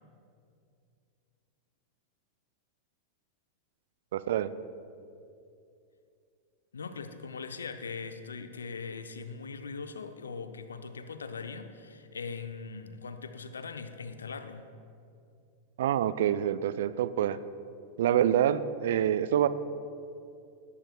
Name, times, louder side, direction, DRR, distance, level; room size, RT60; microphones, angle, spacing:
voice 1, 4.1-4.5 15.8-17.4 18.0-19.5, right 10 dB, 55° right, 14 dB, 0.4 m, -26 dB
voice 2, 6.7-14.6, left 5 dB, 70° left, 10 dB, 0.7 m, -40 dB
21.0 x 11.0 x 2.3 m, 2.5 s
figure-of-eight pair, 90°, 0 cm